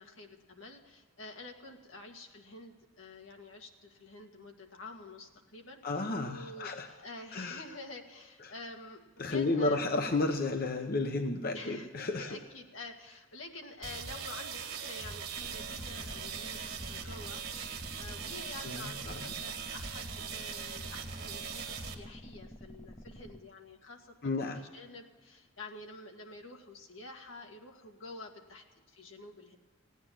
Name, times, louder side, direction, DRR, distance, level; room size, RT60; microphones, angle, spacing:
voice 1, 0.0-9.0 9.3-9.9 11.5-29.6, left 2 dB, 85° left, 3 dB, 1.9 m, -48 dB
voice 2, 5.8-6.9 7.3-7.6 8.4-8.5 9.2-12.4 18.6-19.3 24.2-24.6, left 2 dB, 50° left, 6 dB, 0.8 m, -32 dB
sound 1, 13.8-21.9, right 6 dB, 50° right, 1.8 m, -40 dB
sound 2, 15.4-23.4, equal, 20° left, 0.8 m, -50 dB
17.5 x 9.5 x 7.3 m, 1.5 s
head